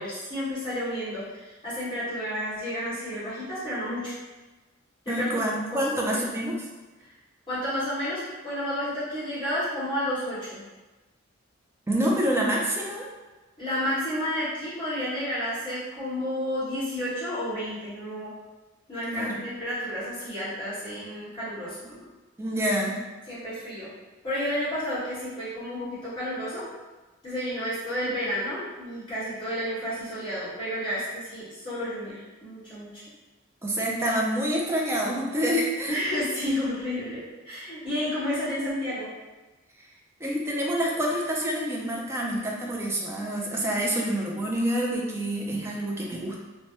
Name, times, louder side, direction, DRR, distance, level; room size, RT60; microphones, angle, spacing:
voice 1, 0.0-4.1 5.0-6.2 7.5-10.6 13.6-18.3 18.9-22.0 23.3-23.9 24.2-26.6 27.2-33.0 35.9-39.1, equal, 25° left, -12 dB, 1.4 m, -31 dB
voice 2, 5.1-6.6 11.9-13.1 19.1-19.4 22.4-23.0 33.6-36.0 40.2-46.4, equal, 15° right, -2 dB, 0.4 m, -27 dB
3.1 x 2.2 x 2.9 m, 1.2 s
head